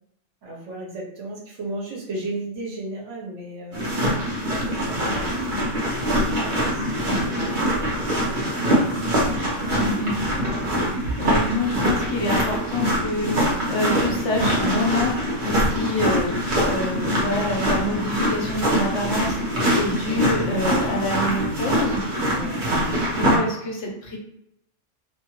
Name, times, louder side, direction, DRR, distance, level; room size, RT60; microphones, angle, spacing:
voice 1, 0.4-3.8 4.5-5.7 6.1-9.1 22.3-22.7, right 2 dB, 75° right, -2 dB, 1.2 m, -36 dB
sound 1, 3.7-23.4, equal, 45° right, 1.0 m, -23 dB
voice 2, 9.7-10.1 10.7-22.0 23.2-24.2, left 2 dB, 70° left, -2 dB, 1.2 m, -27 dB
3.0 x 2.4 x 3.0 m, 0.79 s
omnidirectional pair, 1.3 m